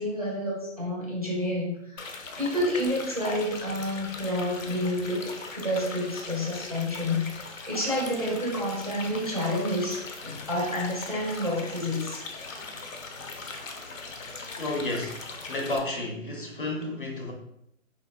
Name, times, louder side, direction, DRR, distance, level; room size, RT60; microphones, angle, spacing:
voice 1, 0.0-12.2, left 1 dB, 30° right, -4 dB, 0.4 m, -29 dB
sound 1, 2.0-15.8, left 3 dB, 85° left, 0.6 m, -40 dB
voice 2, 14.6-17.3, left 2 dB, 45° left, 0 dB, 0.6 m, -32 dB
3.5 x 2.0 x 2.2 m, 0.77 s
hypercardioid pair, 160°, 38 cm